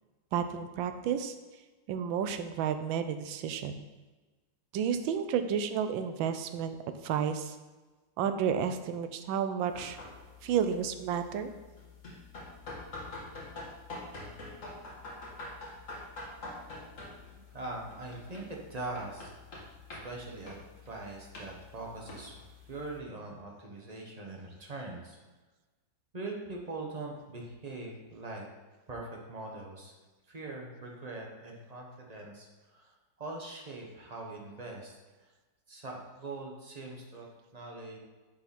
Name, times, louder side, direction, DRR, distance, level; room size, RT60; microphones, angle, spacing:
voice 1, 0.3-1.3 1.9-3.8 4.7-6.8 7.0-7.6 8.2-10.0 10.4-11.5, right 8 dB, 85° right, 9 dB, 1.4 m, -31 dB
sound 1, 9.6-23.0, left 2 dB, 45° left, 1.7 m, -46 dB
voice 2, 17.5-19.3 20.0-20.5 20.9-22.3 22.7-25.2 26.1-28.5 28.9-29.9 30.3-32.5 32.7-32.9 33.2-34.9 35.7-37.3 37.5-38.0, right 2 dB, 35° right, -1 dB, 0.7 m, -42 dB
8.9 x 4.1 x 4.2 m, 1.2 s
omnidirectional pair, 2.1 m